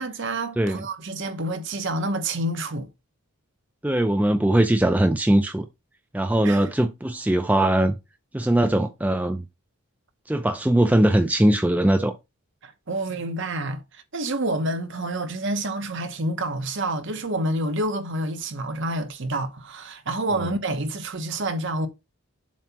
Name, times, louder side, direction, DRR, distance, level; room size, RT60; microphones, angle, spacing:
voice 1, 0.0-2.9 6.4-6.6 12.6-13.8 14.1-21.9, right 1 dB, 55° right, 1.0 m, -28 dB
voice 2, 3.8-5.7 6.1-8.0 8.3-9.4 10.3-12.1 20.4-20.5, right 1 dB, 5° right, 0.4 m, -20 dB
7.3 x 2.8 x 5.8 m
head